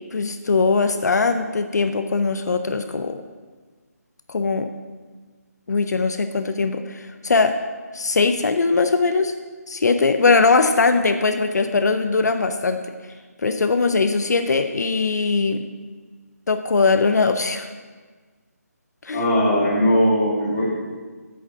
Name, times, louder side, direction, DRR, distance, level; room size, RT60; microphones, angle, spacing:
voice 1, 0.1-3.2 4.3-4.7 5.7-7.6 7.9-9.3 9.7-12.8 13.4-15.7 16.5-17.7 19.0-19.3, left 4 dB, 75° left, 8 dB, 0.5 m, -20 dB
voice 2, 19.1-20.7, equal, 10° left, -7 dB, 1.5 m, -19 dB
8.5 x 3.6 x 6.5 m, 1.4 s
figure-of-eight pair, 165°, 9 cm